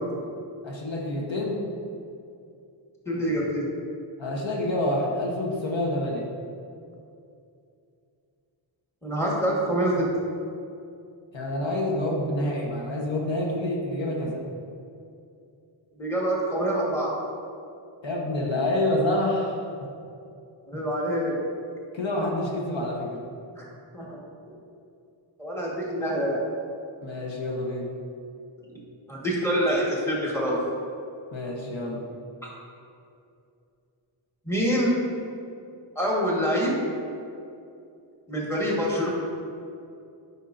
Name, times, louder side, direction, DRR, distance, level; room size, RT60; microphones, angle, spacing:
voice 1, 0.6-1.6 4.2-6.3 11.3-14.4 18.0-19.6 21.9-23.3 27.0-28.0 31.3-32.0, left 1 dB, 65° left, -2 dB, 1.1 m, -27 dB
voice 2, 3.1-3.6 9.0-10.1 16.0-17.1 20.7-21.4 23.5-23.6 23.9-24.2 25.4-26.4 29.1-30.6 32.4-32.5 34.4-35.0 35.9-36.7 38.3-39.1, equal, 5° left, -5 dB, 1.4 m, -25 dB
9.7 x 5.5 x 2.6 m, 2.5 s
wide cardioid pair, 105°, 50 cm